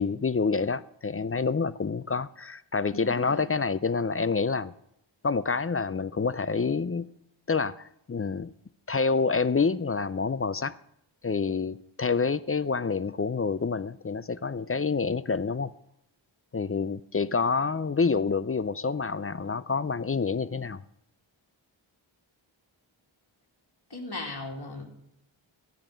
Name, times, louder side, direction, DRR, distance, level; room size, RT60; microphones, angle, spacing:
voice 1, 0.0-4.7 5.2-7.1 7.5-8.5 8.9-10.8 11.2-15.7 16.5-20.8, left 4 dB, 30° left, 0.4 m, -27 dB
voice 2, 2.9-3.5 23.9-24.9, left 2 dB, 50° left, 2.6 m, -37 dB
13.5 x 10.5 x 5.0 m
wide cardioid pair, 60°, 48 cm